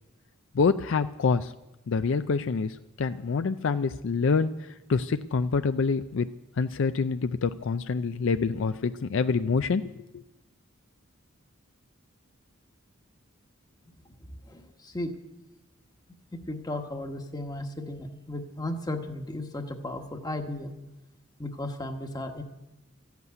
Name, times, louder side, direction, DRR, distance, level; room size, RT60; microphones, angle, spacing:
voice 1, 0.5-1.5 1.9-4.5 4.9-6.3 6.6-10.2, left 4 dB, 60° left, 10 dB, 0.4 m, -26 dB
voice 2, 14.5-15.1 16.5-20.7 21.4-22.4, left 1 dB, 20° left, 5 dB, 1.2 m, -35 dB
14.5 x 8.2 x 9.5 m, 0.98 s
head